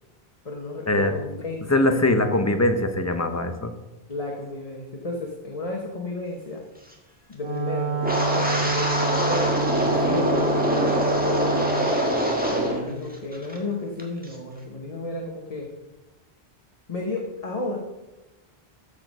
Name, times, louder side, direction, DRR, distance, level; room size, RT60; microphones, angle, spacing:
voice 1, 0.4-1.9 4.1-6.6 7.3-15.7 16.9-17.8, left 2 dB, 35° left, 0 dB, 1.2 m, -33 dB
voice 2, 1.7-3.7, left 1 dB, 15° left, 7 dB, 0.8 m, -22 dB
Wind instrument woodwind instrument, 7.4-11.9, right 4 dB, 85° right, 1.8 m, -28 dB
Wind, 8.0-12.9 13.1-13.6 14.0-14.3, equal, 10° right, 1.5 m, -24 dB
13.5 x 5.1 x 5.4 m, 1.1 s
omnidirectional pair, 1.0 m